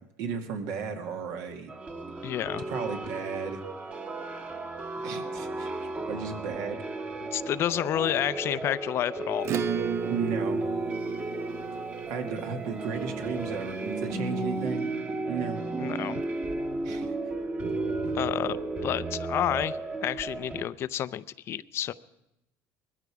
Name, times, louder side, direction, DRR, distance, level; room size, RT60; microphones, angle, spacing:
voice 1, 0.2-1.7 2.7-3.6 5.0-5.7 6.0-6.8 10.1-10.6 12.1-14.9 15.3-15.6 16.8-17.1 17.6-17.7 18.0-18.1, right 5 dB, 75° right, 5 dB, 2.0 m, -34 dB
sound 1, 1.7-20.6, right 2 dB, 25° right, 1.3 m, -34 dB
voice 2, 2.2-2.6 7.3-9.5 15.8-16.2 18.1-21.9, left 11 dB, 45° left, 16 dB, 0.5 m, -30 dB
Acoustic guitar / Strum, 9.4-14.4, right 9 dB, 45° right, 0.6 m, -35 dB
20.5 x 14.5 x 4.8 m, 0.87 s
cardioid pair, 130°, 6 cm